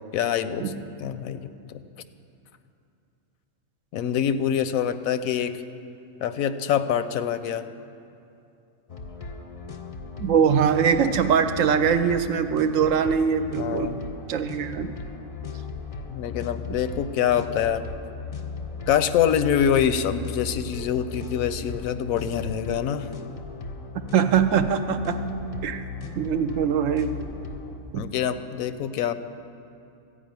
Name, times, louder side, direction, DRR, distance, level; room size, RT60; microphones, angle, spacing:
voice 1, 0.1-0.7 1.0-1.5 3.9-5.6 6.2-7.7 13.6-14.0 16.1-17.8 18.9-23.1 28.0-29.1, left 9 dB, 80° left, 12 dB, 1.0 m, -25 dB
sound 1, 8.9-27.8, left 4 dB, 40° left, 0.5 m, -37 dB
voice 2, 10.2-14.0 14.3-14.9 24.1-25.2 25.6-25.8 26.2-27.2 27.9-28.0, right 7 dB, 75° right, 9 dB, 0.9 m, -22 dB
14.5 x 5.1 x 9.1 m, 2.6 s
omnidirectional pair, 1.4 m